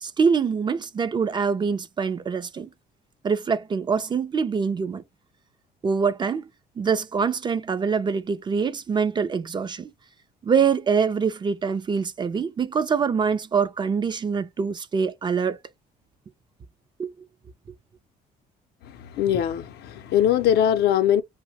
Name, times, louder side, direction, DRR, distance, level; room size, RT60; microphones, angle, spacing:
voice 1, 0.0-2.7 3.2-5.0 5.8-6.5 6.8-9.9 10.4-15.6 17.0-17.1, right 6 dB, 25° right, 0.4 m, -24 dB
voice 2, 18.8-21.2, left 10 dB, 75° left, 0.5 m, -22 dB
2.7 x 2.1 x 2.6 m
cardioid pair, 110°, 17 cm